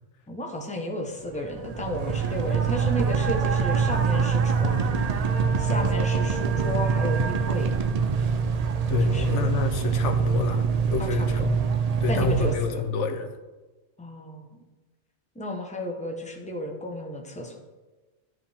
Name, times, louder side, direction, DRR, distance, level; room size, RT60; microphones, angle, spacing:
voice 1, 0.3-5.0 5.6-7.7 9.0-9.5 11.0-11.5 12.1-12.8 14.0-14.7 15.3-17.6, equal, 5° left, 2 dB, 0.9 m, -33 dB
sound 1, 1.3-12.6, right 5 dB, 60° right, 0.4 m, -24 dB
voice 2, 8.9-10.6 10.9-11.7 12.0-13.3, left 4 dB, 80° left, 6 dB, 1.0 m, -28 dB
12.5 x 4.8 x 3.5 m, 1.2 s
omnidirectional pair, 1.2 m